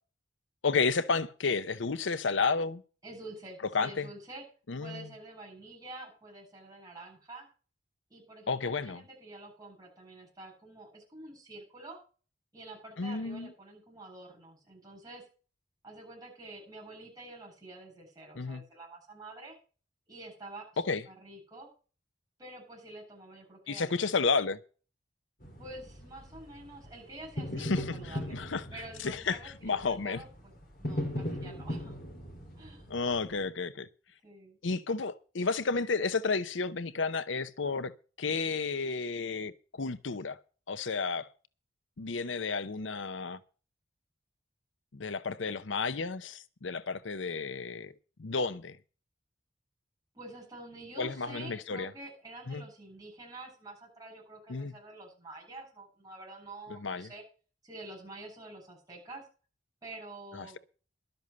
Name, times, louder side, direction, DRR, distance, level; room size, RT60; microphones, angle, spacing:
voice 1, 0.6-2.8 3.7-4.1 4.7-5.1 8.5-9.0 13.0-13.5 18.4-18.6 20.8-21.0 23.7-24.6 27.5-28.6 29.0-30.2 32.9-33.9 34.6-37.9 38.2-40.4 40.7-41.3 42.0-43.4 44.9-47.9 48.2-48.8 51.0-51.9 52.5-52.6 54.5-54.7 56.7-57.1 60.3-60.6, left 4 dB, 85° left, 0.8 m, -32 dB
voice 2, 3.0-4.4 4.8-7.5 8.1-12.0 12.5-15.2 15.8-19.6 20.1-21.7 22.4-24.3 25.6-28.4 28.7-30.5 30.8-32.0 32.6-32.9 34.2-34.6 50.1-57.2 57.6-59.2 59.8-60.6, right 2 dB, 20° right, 7.7 m, -48 dB
sound 1, 25.4-33.5, equal, 45° left, 3.4 m, -39 dB
12.5 x 8.0 x 6.7 m
head